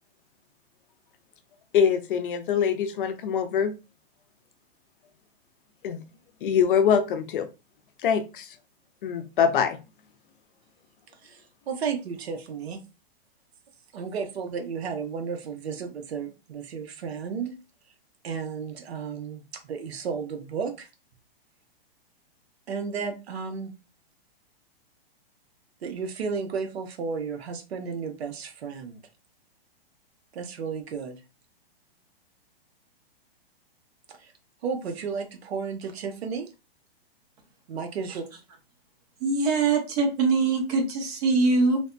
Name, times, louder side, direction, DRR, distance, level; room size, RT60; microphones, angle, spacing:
voice 1, 1.7-3.7 5.8-6.0 6.4-7.5 8.0-8.5 9.0-9.8, left 7 dB, 60° left, 0.5 m, -23 dB
voice 2, 11.2-12.8 13.9-17.6 18.2-20.9 22.7-23.7 25.8-29.0 30.3-31.2 34.1-34.3 34.6-36.5 37.7-38.2, right 5 dB, 90° right, 0.7 m, -33 dB
voice 3, 39.2-41.8, right 3 dB, 40° right, 0.9 m, -23 dB
3.3 x 2.1 x 2.5 m
hypercardioid pair, 155°, 30 cm